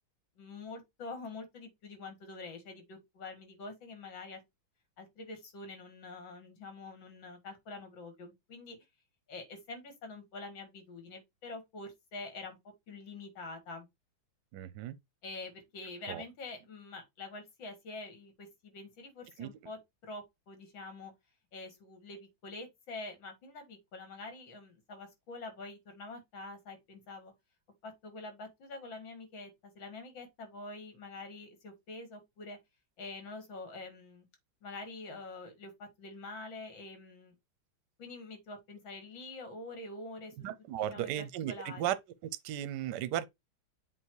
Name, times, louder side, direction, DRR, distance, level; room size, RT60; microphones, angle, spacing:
voice 1, 0.4-4.4 5.0-8.8 9.3-12.6 12.9-13.9 15.2-21.1 21.5-27.3 27.8-32.6 33.0-34.3 34.6-37.3 38.0-40.3 40.9-42.0, left 3 dB, 70° left, 2.5 m, -46 dB
voice 2, 14.5-14.9 16.1-16.2 19.4-19.5 40.4-41.9 42.4-43.2, right 12 dB, 70° right, 1.1 m, -35 dB
7.7 x 2.8 x 4.6 m
omnidirectional pair, 2.2 m